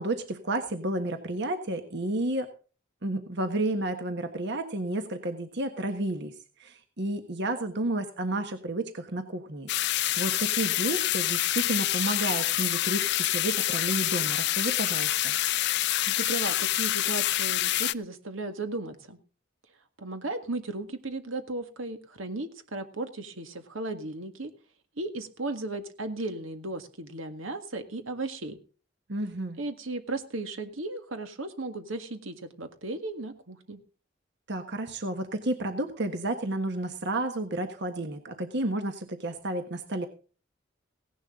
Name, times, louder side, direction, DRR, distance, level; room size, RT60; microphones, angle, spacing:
voice 1, 0.0-2.5 3.0-6.3 6.6-15.3 29.1-29.6 34.5-40.1, right 1 dB, 60° right, 7 dB, 1.4 m, -31 dB
sound 1, 9.7-17.9, left 15 dB, 60° left, 0.5 m, -27 dB
voice 2, 16.1-19.2 20.0-24.5 25.0-28.6 29.6-33.8, right 2 dB, 85° right, 7 dB, 1.8 m, -35 dB
17.0 x 11.0 x 3.8 m, 0.38 s
head